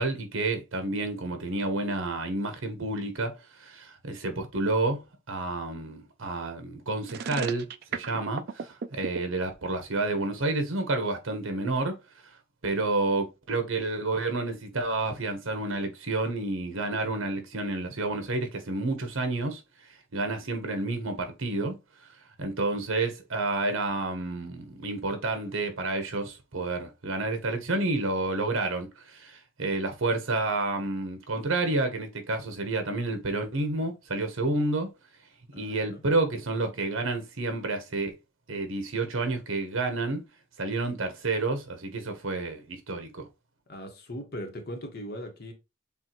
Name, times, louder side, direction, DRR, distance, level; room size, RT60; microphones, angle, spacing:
voice 1, 0.0-5.0 5.3-12.0 12.6-19.6 20.1-21.8 22.4-34.9 35.5-38.2 38.5-40.2 40.6-43.3, right 2 dB, 70° right, 1.1 m, -30 dB
sound 1, 7.0-9.2, right 6 dB, 50° right, 0.3 m, -34 dB
voice 2, 35.5-36.0 43.7-45.5, equal, 50° left, 1.2 m, -39 dB
6.9 x 2.5 x 3.0 m
head